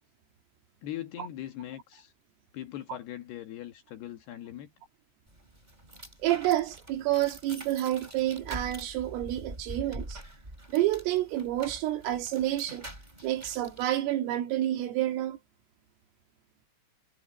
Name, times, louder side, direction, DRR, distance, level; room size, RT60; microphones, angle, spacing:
voice 1, 0.8-2.1 2.5-4.7, left 12 dB, 65° left, 3.0 m, -40 dB
sound 1, 5.3-13.9, right 1 dB, 10° right, 6.1 m, -45 dB
voice 2, 6.2-10.2 10.7-12.9 13.2-15.4, right 14 dB, 80° right, 4.8 m, -29 dB
omnidirectional pair, 5.8 m